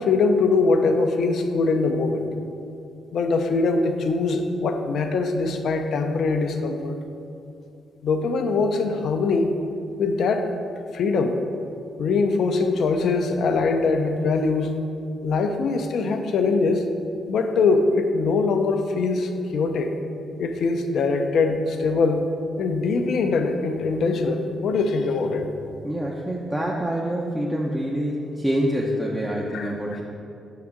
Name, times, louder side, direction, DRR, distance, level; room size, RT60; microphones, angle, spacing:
voice 1, 0.0-2.3 3.1-7.0 8.0-9.5 10.0-10.5 10.9-11.4 12.0-14.8 15.2-16.8 17.3-19.9 20.4-22.3 22.6-25.6 29.5-29.7, left 4 dB, 65° left, 6 dB, 0.5 m, -22 dB
voice 2, 25.8-30.0, equal, 15° right, -3 dB, 0.8 m, -26 dB
6.0 x 3.7 x 5.8 m, 2.6 s
hypercardioid pair, 45°, 0 cm